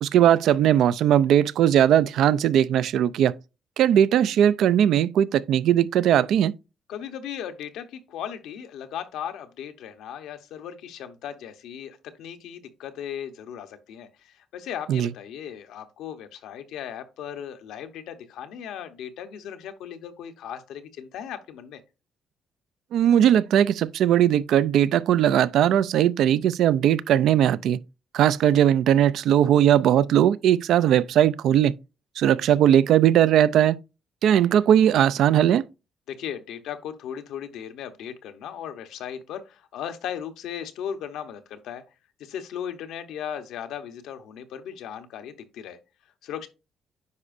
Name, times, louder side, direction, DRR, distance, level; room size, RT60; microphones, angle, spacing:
voice 1, 0.0-3.3 3.8-6.5 14.9-15.1 22.9-27.8 28.1-31.7 32.2-33.8 34.2-35.6, right 10 dB, 80° right, 0.4 m, -19 dB
voice 2, 6.9-21.8 36.1-41.8 42.2-45.8 46.2-46.5, left 9 dB, 85° left, 0.9 m, -37 dB
9.6 x 4.9 x 2.6 m
cardioid pair, 90°, 0 cm